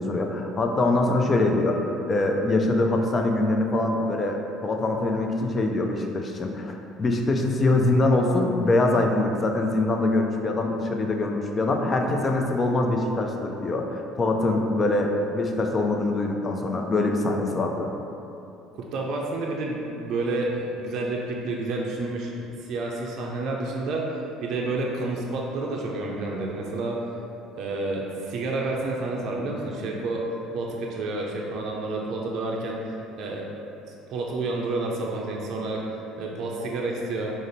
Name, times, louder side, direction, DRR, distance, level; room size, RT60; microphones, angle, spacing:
voice 1, 0.0-1.8 2.1-17.9, left 2 dB, 35° left, 2 dB, 0.5 m, -24 dB
voice 2, 18.7-24.1 24.4-27.0 27.6-30.2 30.5-32.8 33.2-33.5 33.9-37.3, right 2 dB, 60° right, -2 dB, 0.5 m, -29 dB
4.9 x 2.1 x 3.9 m, 2.8 s
hypercardioid pair, 65°, 0 cm